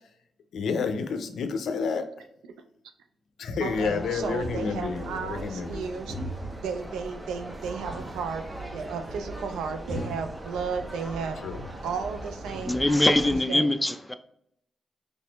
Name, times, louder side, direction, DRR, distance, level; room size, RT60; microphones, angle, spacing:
voice 1, 0.5-2.1 3.4-5.9 11.4-11.6, left 5 dB, 75° left, 0.5 m, -30 dB
sound 1, 3.6-13.4, right 1 dB, 25° right, 0.8 m, -39 dB
voice 2, 3.6-6.2 6.6-8.4 8.7-11.4 11.8-13.7, right 6 dB, 85° right, 0.4 m, -34 dB
sound 2, 4.3-5.0 6.1-6.7 7.9-8.3 8.6-8.7 9.9-10.9 11.3-12.1, equal, 65° right, 1.4 m, -38 dB
voice 3, 12.6-14.2, left 1 dB, 15° left, 0.4 m, -23 dB
4.2 x 3.1 x 2.3 m
supercardioid pair, 50°, 0 cm